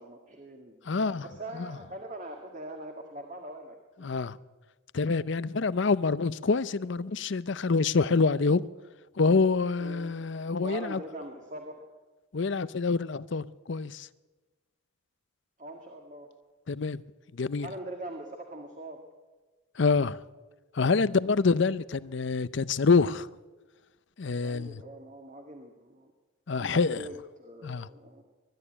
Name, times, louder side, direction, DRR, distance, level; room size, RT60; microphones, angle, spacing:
voice 1, 0.0-4.1 9.8-10.3 10.6-11.9 15.6-16.3 17.6-19.0 21.2-21.4 24.3-26.1 26.5-28.2, right 1 dB, 35° right, 1.9 m, -43 dB
voice 2, 0.9-1.3 1.5-1.8 4.0-4.4 4.9-8.6 9.2-11.0 12.3-14.1 16.7-17.0 17.3-17.7 19.8-20.2 20.7-23.3 24.2-24.8 26.5-27.1 27.6-27.9, left 4 dB, 60° left, 0.6 m, -26 dB
21.5 x 12.5 x 9.9 m
head